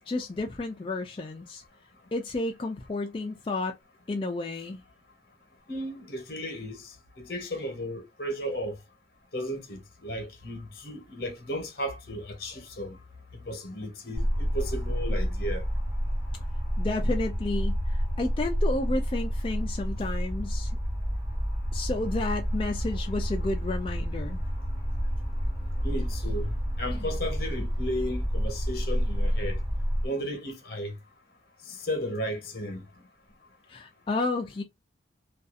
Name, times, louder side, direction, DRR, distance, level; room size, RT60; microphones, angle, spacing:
voice 1, 0.1-1.6 2.1-3.7 4.1-4.8 16.8-20.7 21.7-24.4 33.7-34.6, left 2 dB, 30° left, 0.3 m, -31 dB
voice 2, 5.7-6.8 7.2-8.8 9.3-13.0 13.5-15.6 25.8-26.5 26.8-29.6 30.0-30.9 31.8-32.8, equal, 55° left, 1.0 m, -34 dB
sound 1, 14.1-30.1, equal, 20° right, 1.4 m, -29 dB
2.6 x 2.3 x 2.4 m
head